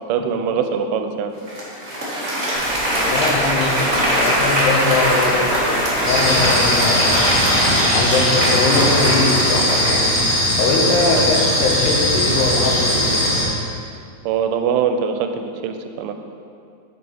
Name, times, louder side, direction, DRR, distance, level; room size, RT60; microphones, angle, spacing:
voice 1, 0.1-1.3 8.4-8.6 11.2-11.3 14.3-16.1, right 7 dB, 90° right, 7 dB, 2.2 m, -22 dB
Applause, 1.5-10.4, equal, 30° right, 1.3 m, -21 dB
sound 1, 2.5-7.5, equal, 55° left, 0.7 m, -33 dB
voice 2, 3.0-7.2 7.9-10.2 10.6-13.4, left 3 dB, 75° left, 0 dB, 2.5 m, -21 dB
sound 2, 6.0-13.4, equal, 20° left, 1.9 m, -19 dB
9.3 x 5.8 x 4.5 m, 2.4 s
omnidirectional pair, 3.7 m